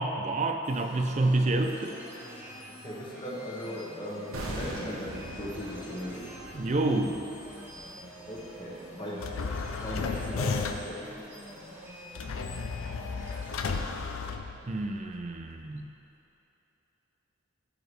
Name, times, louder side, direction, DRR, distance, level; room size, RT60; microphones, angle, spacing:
voice 1, 0.0-2.0 6.5-7.2 14.6-15.8, right 2 dB, 35° right, 5 dB, 0.4 m, -28 dB
sound 1, 0.6-13.8, equal, 10° right, 1.0 m, -46 dB
voice 2, 2.8-6.3 8.3-9.2 9.8-11.1, equal, 25° left, -5 dB, 1.1 m, -38 dB
sound 2, 4.3-9.4 9.6-9.8, right 1 dB, 80° right, 1.0 m, -42 dB
sound 3, 9.2-11.0 12.2-15.0, left 4 dB, 80° left, 0.5 m, -33 dB
12.0 x 4.8 x 3.3 m, 2.9 s
head